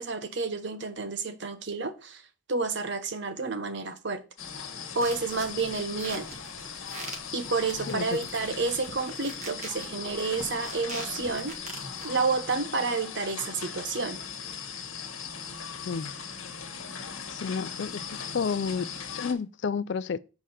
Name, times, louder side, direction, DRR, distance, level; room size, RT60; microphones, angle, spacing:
voice 1, 0.0-4.2 4.9-6.3 7.3-11.5 12.0-14.2, right 4 dB, 55° right, 0.8 m, -30 dB
sound 1, 4.4-19.3, left 6 dB, 70° left, 1.4 m, -39 dB
sound 2, 5.0-12.2, right 2 dB, 35° right, 1.8 m, -44 dB
voice 2, 17.3-20.2, left 5 dB, 55° left, 0.4 m, -31 dB
7.6 x 4.9 x 4.1 m
head